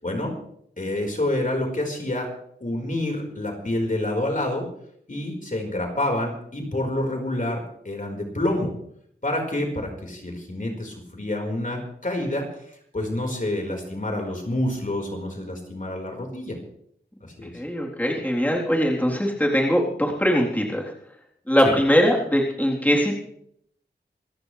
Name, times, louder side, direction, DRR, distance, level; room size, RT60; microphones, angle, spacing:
voice 1, 0.0-0.3 0.8-2.3 2.6-4.7 5.1-8.7 9.2-12.4 12.9-16.6 17.4-17.5 21.6-21.8, left 1 dB, 45° left, 1 dB, 4.7 m, -27 dB
voice 2, 17.5-20.9 21.5-23.2, equal, 10° left, -2 dB, 3.7 m, -21 dB
26.5 x 14.0 x 3.3 m, 0.69 s
wide cardioid pair, 50°, 18 cm